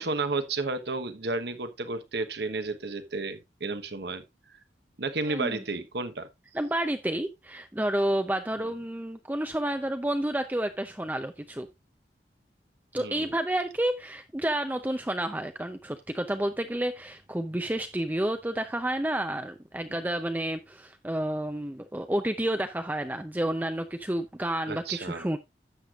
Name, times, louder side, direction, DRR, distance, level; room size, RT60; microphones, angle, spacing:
voice 1, 0.0-4.2 5.0-6.3 13.0-13.3 24.7-25.3, right 3 dB, 70° right, 1.2 m, -32 dB
voice 2, 5.3-5.6 6.5-11.7 12.9-25.4, right 1 dB, 10° right, 0.5 m, -30 dB
12.5 x 7.9 x 2.4 m
head